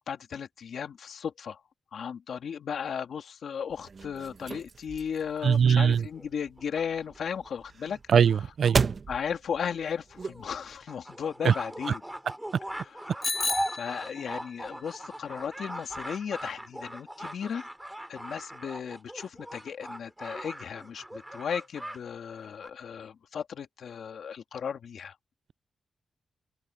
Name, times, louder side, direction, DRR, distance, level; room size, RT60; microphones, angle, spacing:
voice 1, 0.0-1.6 1.9-8.0 9.1-12.0 12.7-13.3 13.7-17.7 18.1-25.2, left 7 dB, 65° left, 2.6 m, -35 dB
sound 1, 3.7-10.8, right 5 dB, 35° right, 0.9 m, -35 dB
voice 2, 5.4-6.0 8.1-8.9 11.4-11.5, right 7 dB, 60° right, 0.3 m, -21 dB
sound 2, 5.9-7.5 8.3-8.4 8.7-8.8 9.1-9.2 9.5-9.6 10.1-22.0 22.3-22.7, right 1 dB, 5° right, 2.8 m, -40 dB
Bicycle bell, 13.2-14.5, left 3 dB, 25° left, 2.2 m, -32 dB
open air
wide cardioid pair, 180°, 0 cm